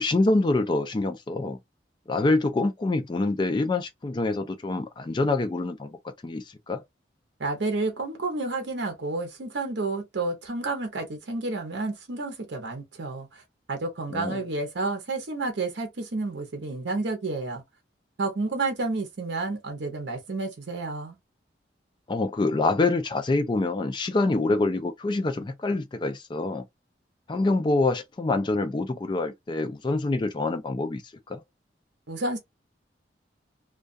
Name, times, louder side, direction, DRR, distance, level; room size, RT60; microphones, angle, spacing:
voice 1, 0.0-1.6 2.1-6.8 14.1-14.4 22.1-26.6 27.3-31.0 31.3-31.4, left 2 dB, 25° left, 0.3 m, -26 dB
voice 2, 7.4-13.4 13.7-17.6 18.2-21.2 32.1-32.4, right 3 dB, 75° right, 0.7 m, -30 dB
2.3 x 2.2 x 2.4 m
head